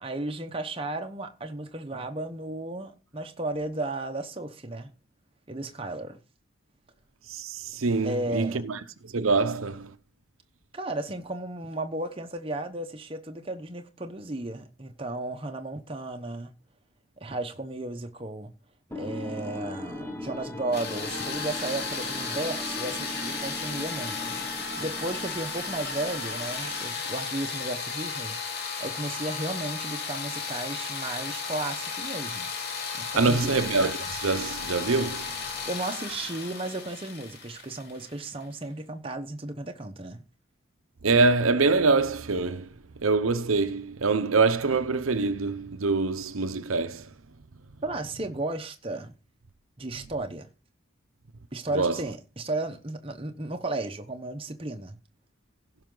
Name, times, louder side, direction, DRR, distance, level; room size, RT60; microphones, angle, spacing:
voice 1, 0.0-4.9 5.5-6.2 8.0-8.6 10.7-16.5 17.2-18.5 18.9-32.5 32.9-33.6 35.7-40.2 47.8-49.1 49.8-50.5 51.5-55.0, right 2 dB, 25° right, 0.9 m, -34 dB
voice 2, 7.3-9.9 33.1-35.4 41.0-42.7 43.0-47.1 51.7-52.0, right 3 dB, 80° right, 0.8 m, -25 dB
sound 1, 18.9-27.1, left 1 dB, 10° left, 0.9 m, -39 dB
sound 2, 20.7-38.4, left 5 dB, 50° left, 2.6 m, -34 dB
16.0 x 5.7 x 3.9 m
head